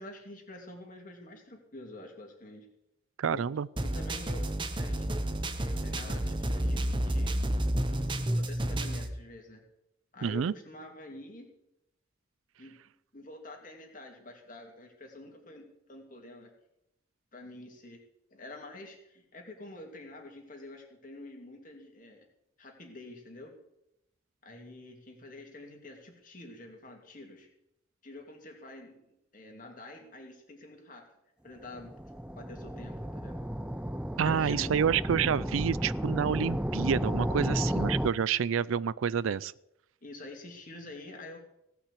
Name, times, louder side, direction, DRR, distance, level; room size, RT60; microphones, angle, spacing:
voice 1, 0.0-2.7 3.3-3.4 3.8-5.2 5.5-7.4 7.9-9.6 10.1-11.5 12.6-12.8 13.1-16.5 17.3-18.0 18.3-22.3 22.6-23.6 24.4-27.5 28.0-31.1 31.4-32.0 32.3-33.4 34.2-34.8 37.4-37.7 40.0-41.4, left 2 dB, 40° left, 2 dB, 2.7 m, -47 dB
voice 2, 3.2-3.7 10.2-10.5 34.2-39.5, right 7 dB, 85° right, 21 dB, 0.4 m, -28 dB
sound 1, 3.8-9.1, right 1 dB, 25° right, 0.8 m, -30 dB
sound 2, 31.7-38.1, equal, 5° right, 0.4 m, -33 dB
17.5 x 6.0 x 8.4 m, 0.83 s
head